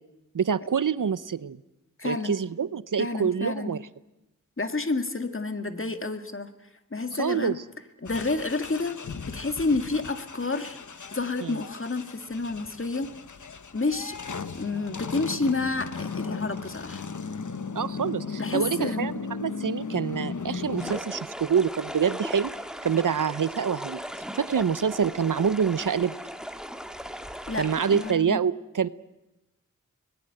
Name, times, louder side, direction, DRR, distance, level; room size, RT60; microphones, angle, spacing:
voice 1, 0.3-1.6 2.0-3.8 7.1-7.6 11.4-11.6 17.7-19.1 19.4-22.5 22.8-24.0 24.4-26.2 27.6-28.9, right 7 dB, 70° right, 17 dB, 0.7 m, -26 dB
voice 2, 2.0-2.3 3.0-3.7 4.6-6.5 6.9-7.6 8.0-9.0 9.3-10.8 11.1-13.1 13.7-14.2 14.5-17.1 18.4-19.1 27.5-28.4, left 3 dB, 40° left, 8 dB, 1.9 m, -29 dB
sound 1, 8.0-21.0, left 5 dB, 65° left, 1.1 m, -37 dB
sound 2, 20.8-28.1, equal, ahead, 1.7 m, -38 dB
25.0 x 20.0 x 7.8 m, 0.97 s
wide cardioid pair, 50°, 32 cm